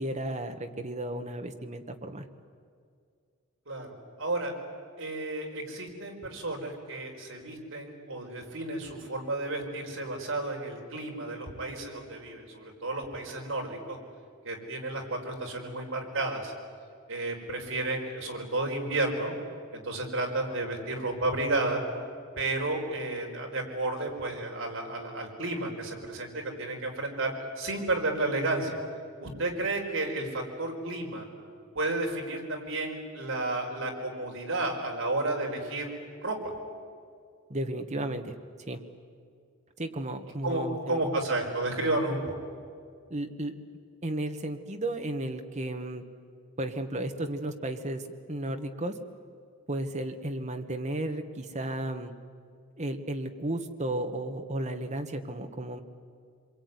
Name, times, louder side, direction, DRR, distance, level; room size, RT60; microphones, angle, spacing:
voice 1, 0.0-2.3 37.5-38.3 38.7-38.8 39.8-41.1 43.1-43.5 44.0-46.0 46.6-48.9 49.7-52.1 52.8-55.8, right 1 dB, 30° right, 6 dB, 1.6 m, -34 dB
voice 2, 4.2-4.5 5.0-14.0 14.4-16.5 17.1-19.3 19.7-21.8 22.4-28.8 29.2-31.2 31.7-35.9 36.2-36.5 40.4-42.3, right 2 dB, 60° right, 1 dB, 5.0 m, -32 dB
26.5 x 23.0 x 9.7 m, 2.2 s
head